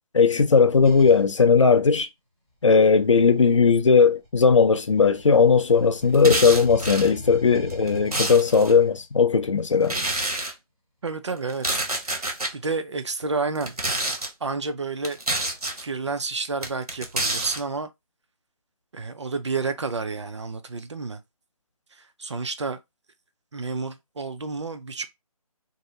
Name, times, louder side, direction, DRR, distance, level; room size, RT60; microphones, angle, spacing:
voice 1, 0.1-2.1 2.6-10.0, left 5 dB, 55° left, 0.4 m, -18 dB
sound 1, 0.8-1.3 2.6-4.5 4.9-9.1, left 1 dB, 5° right, 1.0 m, -40 dB
sound 2, 6.1-7.1 7.7-8.7 9.8-10.5 11.5-12.5 13.6-14.3 15.0-15.8 16.6-17.6, right 2 dB, 90° right, 0.8 m, -27 dB
voice 2, 11.0-11.7 12.0-13.8 14.4-15.2 15.8-17.9 18.9-21.2 21.9-22.8 23.5-25.0, right 4 dB, 50° right, 0.4 m, -30 dB
2.7 x 2.0 x 2.6 m
figure-of-eight pair, 155°, 19 cm